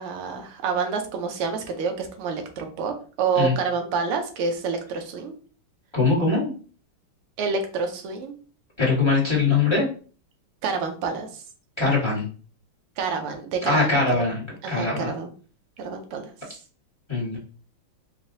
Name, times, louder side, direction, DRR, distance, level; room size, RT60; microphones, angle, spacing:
voice 1, 0.0-5.3 7.4-8.4 10.6-11.4 13.0-14.3 14.6-15.3 15.8-16.3, right 5 dB, 85° right, 5 dB, 1.7 m, -28 dB
voice 2, 5.9-6.5 8.8-9.9 11.8-12.3 13.6-15.1 17.1-17.4, left 3 dB, 15° left, -5 dB, 1.2 m, -22 dB
5.0 x 2.6 x 2.6 m, 0.39 s
omnidirectional pair, 2.4 m